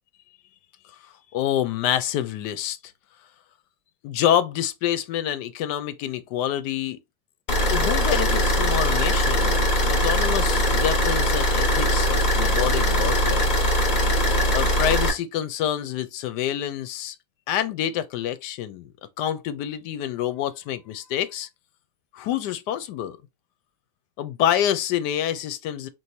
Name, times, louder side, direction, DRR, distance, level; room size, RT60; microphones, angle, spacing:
voice 1, 1.3-2.8 4.0-7.0 7.7-13.5 14.5-17.2 17.5-18.9 19.2-21.5 22.1-23.2 24.2-25.9, left 10 dB, 80° left, 1.2 m, -27 dB
sound 1, 7.5-15.1, equal, 35° left, 0.8 m, -21 dB
4.6 x 3.1 x 2.7 m
omnidirectional pair, 1.8 m